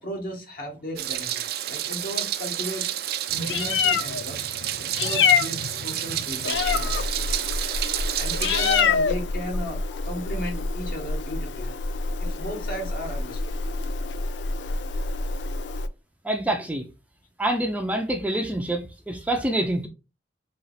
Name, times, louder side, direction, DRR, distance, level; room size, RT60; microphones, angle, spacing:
voice 1, 0.0-2.9 3.3-4.5 4.8-7.6 8.2-11.7 12.2-13.5, equal, 55° left, 1.7 m, -35 dB
Meow, 1.0-8.8, right 12 dB, 60° right, 0.4 m, -30 dB
Meow 2, 3.3-15.9, left 5 dB, 90° left, 0.5 m, -27 dB
voice 2, 16.2-16.9 17.4-19.9, right 1 dB, 10° right, 0.5 m, -26 dB
4.4 x 3.0 x 4.0 m
head